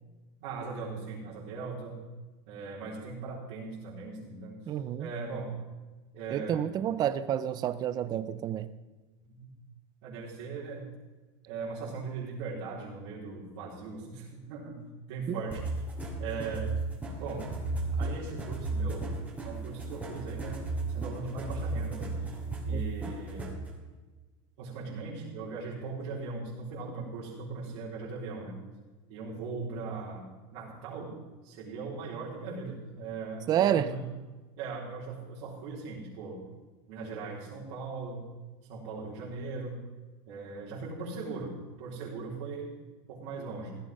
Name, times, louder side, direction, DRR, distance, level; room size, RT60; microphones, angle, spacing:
voice 1, 0.4-2.0 2.4-5.5 6.1-6.6 9.3-9.5 10.0-10.9 11.5-14.8 15.1-15.6 16.2-16.7 17.2-17.5 17.9-19.1 19.4-20.6 20.9-22.1 22.6-23.5 24.6-28.6 29.1-30.2 30.5-31.2 31.4-34.1 34.6-36.4 36.9-38.3 38.7-39.8 40.3-42.7 43.1-43.8, right 4 dB, 55° right, -7 dB, 4.3 m, -39 dB
voice 2, 4.7-5.1 6.3-8.7 15.3-15.4 22.7-22.8 33.5-33.9, right 10 dB, 25° right, 13 dB, 0.6 m, -29 dB
sound 1, 15.5-23.7, right 3 dB, 10° right, 2.8 m, -34 dB
16.0 x 13.0 x 5.4 m, 1.2 s
supercardioid pair, 160°, 16 cm